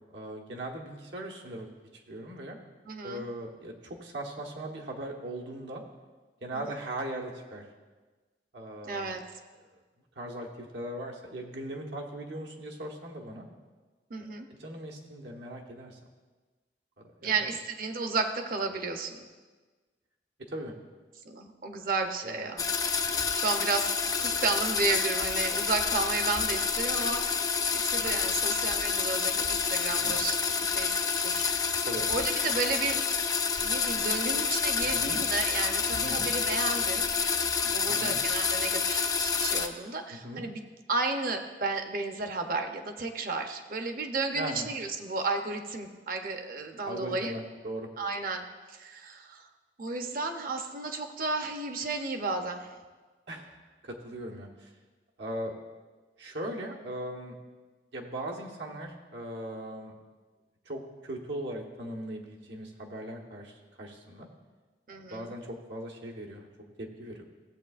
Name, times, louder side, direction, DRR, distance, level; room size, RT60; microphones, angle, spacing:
voice 1, 0.1-1.7 1.9-2.6 3.0-5.8 6.4-7.6 8.5-9.1 9.6-9.8 10.1-13.5 14.2-16.0 17.0-17.4 20.5-20.7 22.2-22.5 30.0-30.2 31.9-32.1 34.8-35.2 35.9-36.3 37.9-38.2 40.1-40.4 44.3-44.7 46.8-47.9 53.3-53.6 53.8-54.7 55.2-55.5 56.2-57.3 57.9-59.9 60.6-64.3 65.1-66.5 66.8-67.2, right 1 dB, 80° right, 0 dB, 1.3 m, -39 dB
voice 2, 2.9-3.3 6.5-6.6 8.8-9.2 14.1-14.5 17.2-19.3 21.3-22.6 23.3-27.6 27.8-33.0 33.6-40.6 40.9-47.3 48.0-49.4 49.8-52.8 64.9-65.3, right 3 dB, 50° right, 5 dB, 0.7 m, -33 dB
sound 1, 22.6-39.7, left 5 dB, 20° left, 0.4 m, -28 dB
15.5 x 7.9 x 2.5 m, 1.3 s
head